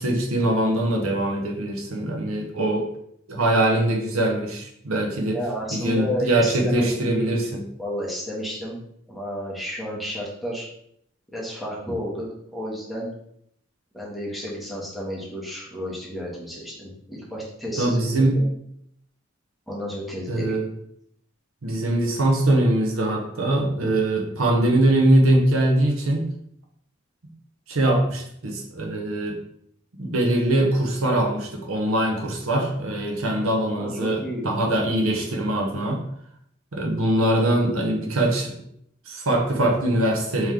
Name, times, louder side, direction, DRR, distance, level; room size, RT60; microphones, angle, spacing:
voice 1, 0.0-2.9 3.3-5.4 5.7-7.6 17.8-18.4 20.3-20.7 21.6-26.3 27.7-29.4 30.0-36.0 36.7-38.5 39.1-40.5, right 1 dB, 85° right, 1 dB, 0.8 m, -22 dB
voice 2, 5.3-7.4 7.8-8.8 9.1-10.7 11.3-13.1 13.9-18.5 19.7-20.6 33.7-34.5 34.8-35.1, equal, ahead, -6 dB, 1.0 m, -32 dB
3.2 x 3.1 x 3.6 m, 0.71 s
head